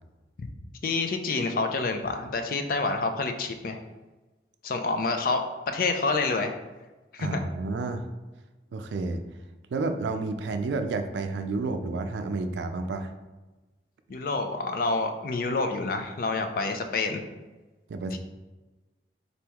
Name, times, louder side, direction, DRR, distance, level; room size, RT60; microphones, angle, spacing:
voice 1, 0.8-3.8 4.6-6.5 7.1-7.4 14.1-17.2 18.1-18.2, left 3 dB, 50° left, 6 dB, 0.4 m, -28 dB
voice 2, 7.2-8.0 8.7-9.2 9.7-13.1 17.9-18.2, right 3 dB, 80° right, 8 dB, 0.4 m, -30 dB
4.1 x 2.9 x 3.4 m, 1.2 s
head